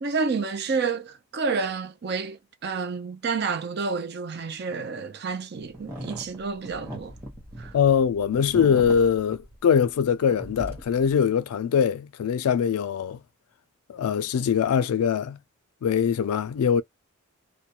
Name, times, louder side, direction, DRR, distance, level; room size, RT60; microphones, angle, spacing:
voice 1, 0.0-7.1 7.6-7.7, right 4 dB, 45° right, 0.4 m, -29 dB
sound 1, 5.7-10.1 10.3-11.1, right 1 dB, 10° right, 0.9 m, -39 dB
voice 2, 7.7-13.2 13.9-15.4 15.8-16.8, left 7 dB, 80° left, 0.3 m, -22 dB
2.3 x 2.1 x 2.8 m
head